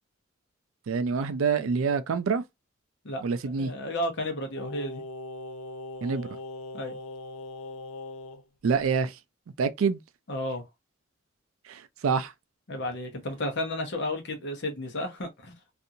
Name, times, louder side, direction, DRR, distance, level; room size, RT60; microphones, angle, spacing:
voice 1, 0.9-2.4 3.2-3.7 6.0-6.3 8.6-9.2 9.6-10.0 11.7-12.3, right 5 dB, 80° right, 0.4 m, -26 dB
voice 2, 3.0-5.0 6.7-7.0 10.3-10.6 12.7-15.6, left 1 dB, 60° left, 0.9 m, -33 dB
Singing, 4.6-8.4 8.7-8.8, left 2 dB, 90° left, 0.4 m, -40 dB
2.6 x 2.4 x 2.7 m
head